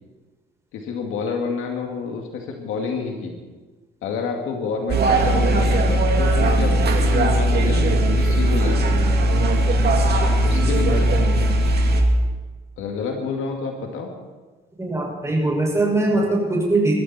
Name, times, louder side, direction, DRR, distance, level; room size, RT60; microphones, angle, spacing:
voice 1, 0.7-3.3 4.0-6.7 7.0-8.9 10.1-11.3 12.8-14.1, left 5 dB, 90° left, 2 dB, 2.4 m, -28 dB
sound 1, 4.9-12.0, right 1 dB, 55° right, 2.3 m, -18 dB
voice 2, 14.8-16.9, right 2 dB, 15° right, -2 dB, 6.1 m, -21 dB
21.5 x 14.0 x 4.4 m, 1.3 s
cardioid pair, 90°, 20 cm